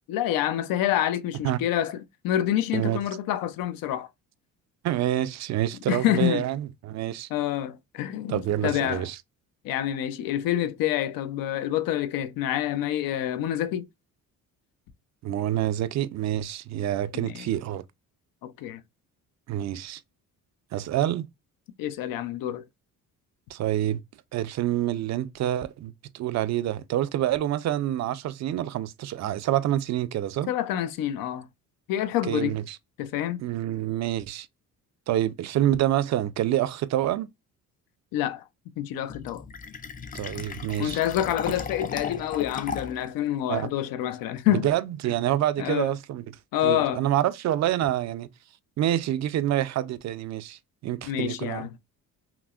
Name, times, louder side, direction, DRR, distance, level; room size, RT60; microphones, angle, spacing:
voice 1, 0.1-4.1 5.9-6.4 7.3-9.1 9.6-13.9 17.1-17.5 18.4-18.8 21.8-22.6 30.5-31.5 31.9-32.6 33.0-33.4 38.1-38.4 38.8-39.4 40.8-44.7 45.6-45.9 46.5-47.0 51.0-51.7, left 12 dB, 85° left, 0.6 m, -27 dB
voice 2, 4.8-7.3 8.3-9.2 15.2-17.8 19.5-20.0 20.7-21.3 23.5-24.0 24.3-30.5 32.3-32.8 33.4-34.5 35.1-37.3 40.1-41.0 43.5-43.7 44.6-46.2 46.6-48.3 48.8-51.8, right 12 dB, 55° right, 0.4 m, -27 dB
Fill (with liquid), 39.1-43.1, left 5 dB, 25° left, 0.4 m, -36 dB
5.9 x 2.0 x 2.4 m
cardioid pair, 120°, 34 cm